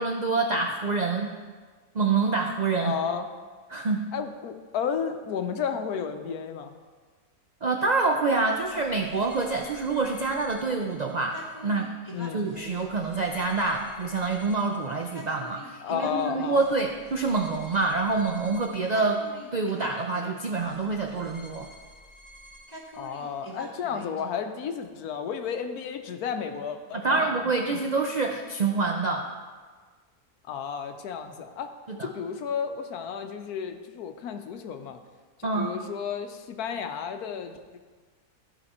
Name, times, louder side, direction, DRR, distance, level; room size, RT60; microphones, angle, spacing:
voice 1, 0.0-1.3 1.9-3.0 3.7-4.1 7.6-11.9 12.3-19.2 19.5-21.7 26.9-29.3 31.9-32.1 35.4-35.7, right 3 dB, 80° right, 2 dB, 0.3 m, -26 dB
voice 2, 2.8-3.3 4.1-6.7 12.1-12.4 15.8-16.7 22.9-27.3 27.7-27.8 30.4-31.7 32.0-35.0 35.4-37.8, left 7 dB, 85° left, 7 dB, 1.2 m, -32 dB
sound 1, 8.5-24.2, equal, 15° right, 2.0 m, -47 dB
13.5 x 5.1 x 4.3 m, 1.5 s
omnidirectional pair, 1.6 m